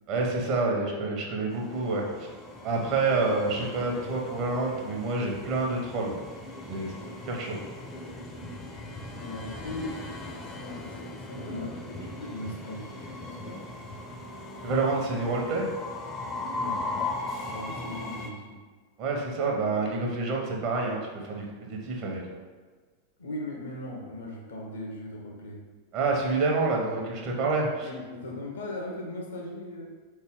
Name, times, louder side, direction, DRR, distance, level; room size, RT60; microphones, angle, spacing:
voice 1, 0.1-2.3 2.6-6.2 6.7-6.9 7.3-7.6 14.6-15.7 19.0-22.2 25.9-27.9, right 3 dB, 40° right, 0 dB, 0.9 m, -28 dB
Train, 1.5-18.3, left 2 dB, 20° left, 0.6 m, -38 dB
voice 2, 9.1-10.1 10.5-13.7 16.5-16.9 17.5-18.6 23.2-25.6 27.8-29.9, left 1 dB, 65° left, 0 dB, 0.9 m, -38 dB
4.1 x 3.3 x 3.7 m, 1.4 s
figure-of-eight pair, 90°, 0 cm